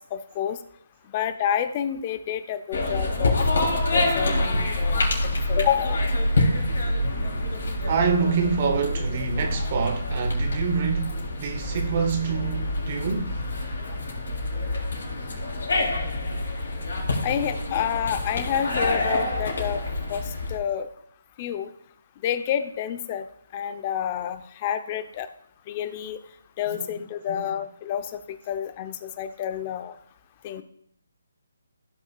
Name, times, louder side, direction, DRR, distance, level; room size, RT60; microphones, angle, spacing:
voice 1, 0.1-0.6 1.1-5.0 5.5-6.0 17.2-19.8 20.1-20.2 20.5-20.9 21.4-21.7 22.2-23.2 23.5-25.3 25.7-26.2 26.6-29.9 30.4-30.6, left 9 dB, 30° left, 0.8 m, -29 dB
sound 1, 2.7-20.6, left 1 dB, 65° left, 3.3 m, -26 dB
voice 2, 7.8-13.3 26.7-26.9 27.3-27.5, right 6 dB, 40° right, 1.0 m, -26 dB
16.0 x 6.0 x 2.4 m
figure-of-eight pair, 150°, 0 cm